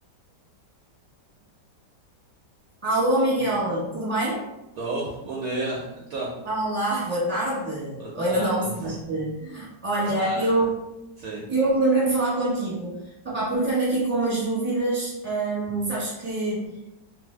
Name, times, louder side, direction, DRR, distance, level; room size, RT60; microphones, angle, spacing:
voice 1, 2.8-4.4 6.4-10.7 11.5-16.8, right 2 dB, 10° right, -8 dB, 1.0 m, -25 dB
voice 2, 4.8-6.3 8.0-8.8 10.2-10.7 11.2-11.4, right 2 dB, 70° right, -4 dB, 0.9 m, -32 dB
2.6 x 2.5 x 3.2 m, 0.94 s
omnidirectional pair, 1.9 m